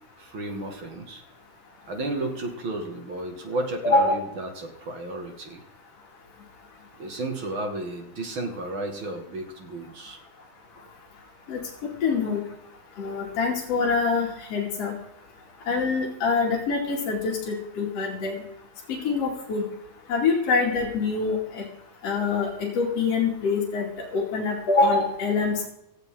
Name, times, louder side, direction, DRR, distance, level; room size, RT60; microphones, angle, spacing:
voice 1, 0.2-1.2 1.9-5.6 7.0-10.2, right 2 dB, 40° right, 4 dB, 2.3 m, -33 dB
voice 2, 12.0-12.4 13.0-14.9 15.7-18.4 18.9-19.6 20.1-21.6 22.0-23.8 24.1-25.7, left 4 dB, 45° left, -3 dB, 3.3 m, -25 dB
17.5 x 14.0 x 3.8 m, 0.78 s
omnidirectional pair, 4.3 m